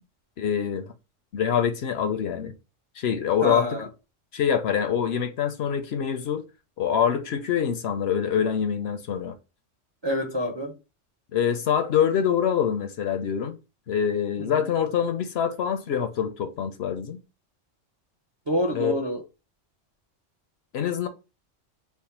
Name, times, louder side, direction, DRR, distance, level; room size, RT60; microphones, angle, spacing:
voice 1, 0.4-0.9 1.3-2.5 3.0-3.8 4.3-6.4 6.8-9.3 11.3-13.6 13.9-17.2 18.7-18.9 20.7-21.1, left 8 dB, 65° left, 0.7 m, -25 dB
voice 2, 3.4-3.9 10.0-10.7 14.4-14.7 18.5-19.2, equal, 40° right, 0.3 m, -27 dB
3.5 x 2.1 x 4.2 m
omnidirectional pair, 1.3 m